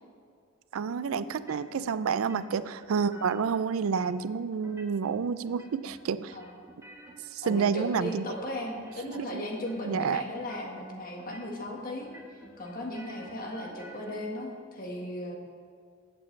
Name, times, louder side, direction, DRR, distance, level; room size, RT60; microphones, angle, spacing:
voice 1, 0.7-6.4 7.3-8.3 9.1-9.4 9.8-10.2, right 6 dB, 85° right, 15 dB, 0.4 m, -29 dB
sound 1, 1.3-1.9 2.2-3.5 3.8-4.3 4.6-5.2 5.4-6.0 6.3-8.5 8.7-9.3 9.5-10.0 10.3-10.9 11.2-11.7 12.0-14.1, right 1 dB, 15° right, 1.2 m, -50 dB
voice 2, 7.4-15.3, left 1 dB, 45° left, 0 dB, 1.6 m, -37 dB
14.5 x 8.3 x 3.3 m, 2.2 s
head